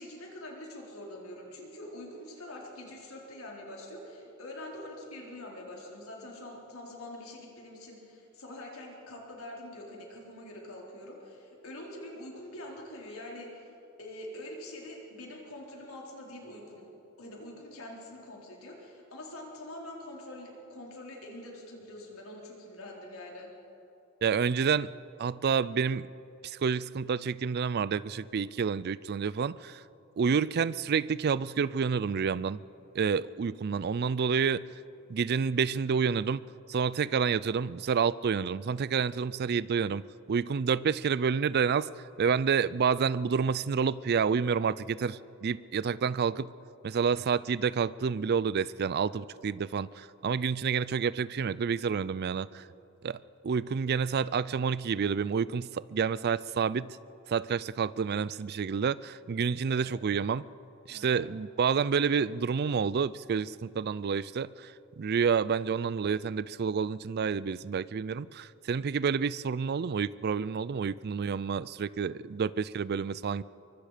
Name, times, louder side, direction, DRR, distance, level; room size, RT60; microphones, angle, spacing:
voice 1, 0.0-13.5 14.0-16.9 17.2-23.5 59.7-60.0 60.9-61.2, left 1 dB, 80° left, -2 dB, 4.3 m, -45 dB
voice 2, 24.2-24.9 25.2-26.1 26.4-29.8 30.2-32.6 32.9-34.6 35.1-36.4 36.7-40.0 40.3-41.9 42.2-46.5 46.8-52.6 53.0-53.2 53.4-57.0 57.3-60.4 60.9-64.7 65.0-73.4, right 6 dB, 50° right, 19 dB, 0.4 m, -29 dB
23.5 x 23.5 x 5.1 m, 2.9 s
head